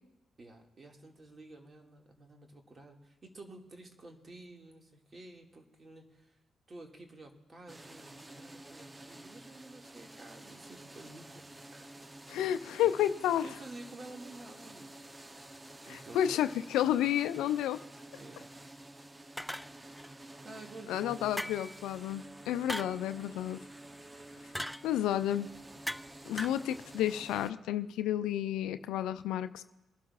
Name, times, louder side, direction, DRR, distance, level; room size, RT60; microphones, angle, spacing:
voice 1, 0.4-6.4 6.7-11.5 11.8-11.9 12.8-13.2 13.4-15.0 15.9-16.5 18.1-18.5 20.4-21.4 24.4-24.6, right 2 dB, 40° right, 2 dB, 2.1 m, -51 dB
sound 1, 7.7-27.5, right 1 dB, 25° right, 0.7 m, -51 dB
voice 2, 12.3-13.5 15.9-17.8 20.9-23.6 24.8-25.5 26.3-29.6, left 11 dB, 75° left, 11 dB, 0.4 m, -31 dB
sound 2, 19.4-20.1 21.4-21.8 22.7-23.0 24.5-24.9 25.9-26.1 26.4-26.6, equal, 5° left, 0.3 m, -38 dB
23.0 x 11.5 x 2.4 m, 1.0 s
hypercardioid pair, 45°, 0 cm